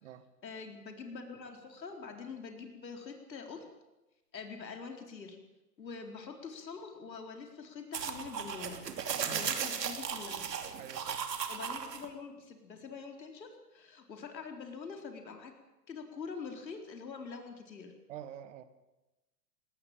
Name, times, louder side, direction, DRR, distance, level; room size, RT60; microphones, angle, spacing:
voice 1, 0.4-3.7 4.3-5.4 5.8-8.8 9.3-10.5 11.5-15.5 15.9-17.9, left 5 dB, 80° left, 4 dB, 4.3 m, -45 dB
sound 1, 7.9-12.1, right 7 dB, 75° right, 3.0 m, -36 dB
voice 2, 9.2-9.5 10.8-11.3 18.1-18.6, right 10 dB, 45° right, 12 dB, 1.9 m, -47 dB
20.0 x 18.5 x 8.9 m, 1.0 s
hypercardioid pair, 135°, 50 cm